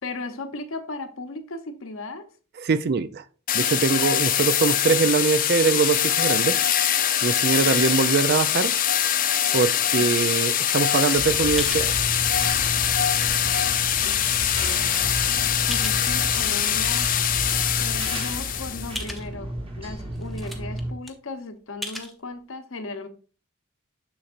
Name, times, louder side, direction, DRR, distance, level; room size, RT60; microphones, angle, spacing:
voice 1, 0.0-2.3 14.0-15.2 15.7-17.1 17.8-23.1, left 3 dB, 65° left, 0.9 m, -36 dB
voice 2, 2.6-3.2 3.5-6.6 7.2-8.7 9.5-11.9, right 5 dB, 50° right, 0.4 m, -22 dB
sound 1, 3.5-19.0, left 10 dB, 40° left, 0.6 m, -23 dB
sound 2, 10.7-10.9 11.6-11.9 12.6-12.7 13.2-14.1 14.7-14.8 15.7-16.3 16.7-17.4 17.8-17.9 18.1-18.2 18.9-19.3 19.9-20.0 20.1-20.8 21.1-21.2 21.8-22.1, left 1 dB, ahead, 0.7 m, -38 dB
sound 3, 11.1-20.9, right 1 dB, 25° right, 1.3 m, -32 dB
7.0 x 6.5 x 2.5 m
head